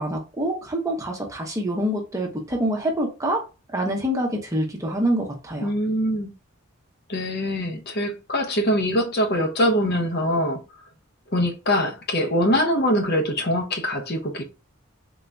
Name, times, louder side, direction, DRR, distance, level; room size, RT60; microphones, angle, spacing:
voice 1, 0.0-3.4 3.7-5.7, right 1 dB, 15° right, 0.8 m, -26 dB
voice 2, 5.6-6.3 7.1-10.6 11.3-14.4, equal, 50° left, 0.8 m, -23 dB
3.8 x 2.8 x 3.4 m
head